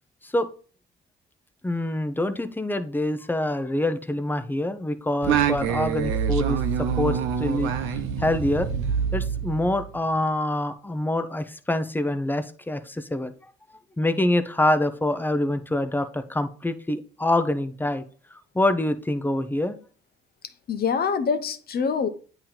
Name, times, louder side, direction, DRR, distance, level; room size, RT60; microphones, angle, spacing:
voice 1, 1.6-7.7 8.2-8.7 9.1-13.3 14.0-18.0 18.5-19.8, left 1 dB, 10° left, 0.7 m, -25 dB
Singing, 5.2-10.0, right 7 dB, 85° right, 0.7 m, -26 dB
voice 2, 20.4-22.1, left 6 dB, 50° left, 0.8 m, -25 dB
8.5 x 3.0 x 3.9 m
cardioid pair, 80°, 20 cm